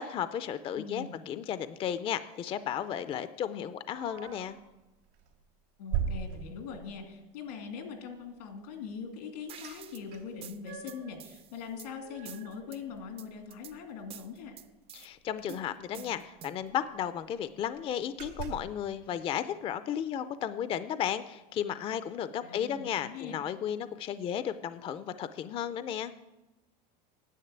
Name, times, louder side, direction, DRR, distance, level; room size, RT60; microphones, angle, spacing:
voice 1, 0.0-4.6 14.9-26.1, left 9 dB, 30° left, 13 dB, 0.4 m, -34 dB
voice 2, 0.8-1.2 5.8-14.6 22.4-23.4, left 6 dB, 90° left, 4 dB, 2.4 m, -42 dB
sound 1, 3.9-4.6 5.1-5.3 5.9-7.0 9.6-9.8 10.1-11.2 11.6-13.4 13.7-13.8 14.1-14.4 15.4-15.5 15.8-15.9 16.3-17.2 17.6-17.8 18.2-18.8, right 8 dB, 85° right, 2.7 m, -39 dB
sound 2, 9.5-10.0 10.4-11.9 12.3-12.8 13.2-13.7 14.1-15.1 15.5-16.7, right 9 dB, 30° right, 0.5 m, -49 dB
10.0 x 7.5 x 8.8 m, 1.0 s
supercardioid pair, 140°, 20 cm